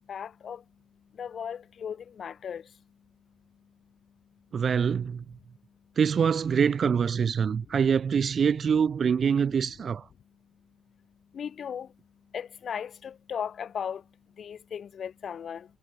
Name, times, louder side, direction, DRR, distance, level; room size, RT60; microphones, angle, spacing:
voice 1, 0.1-0.6 1.2-2.6 11.3-11.9 12.3-14.0 14.4-15.7, left 8 dB, 55° left, 5.6 m, -36 dB
voice 2, 4.5-5.2 6.0-10.0, right 7 dB, 50° right, 1.9 m, -25 dB
cardioid pair, 90°, 0 cm